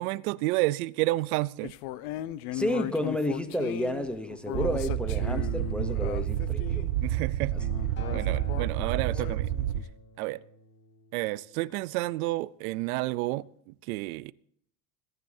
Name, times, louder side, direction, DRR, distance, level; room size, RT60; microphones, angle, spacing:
voice 1, 0.0-1.7 7.0-7.5 8.1-9.5 10.2-10.4 11.1-14.3, right 20 dB, 80° right, 0.6 m, -30 dB
sound 1, 1.6-6.9 7.5-9.8, left 16 dB, 75° left, 0.8 m, -37 dB
voice 2, 2.5-6.9 9.1-9.2, equal, ahead, 0.7 m, -31 dB
sound 2, 4.5-9.8, right 12 dB, 60° right, 0.9 m, -29 dB
Acoustic guitar, 8.0-12.3 13.1-13.2, left 5 dB, 25° left, 2.4 m, -50 dB
27.0 x 11.0 x 2.7 m
cardioid pair, 160°, 43 cm